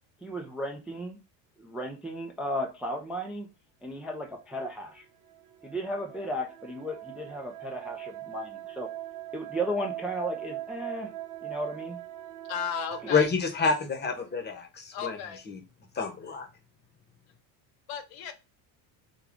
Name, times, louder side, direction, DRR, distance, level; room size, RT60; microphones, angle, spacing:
voice 1, 0.2-1.2 1.6-3.5 3.8-5.1 5.6-8.9 9.3-11.1 11.4-12.0, equal, 5° right, 0.3 m, -35 dB
sound 1, 4.9-13.2, right 14 dB, 65° right, 0.6 m, -41 dB
voice 2, 12.5-13.3 14.9-15.4 17.9-18.3, left 8 dB, 75° left, 0.8 m, -34 dB
voice 3, 13.1-15.2 15.5-15.6 15.9-16.5, left 5 dB, 20° left, 0.9 m, -28 dB
3.5 x 2.3 x 3.6 m
supercardioid pair, 100°, 48 cm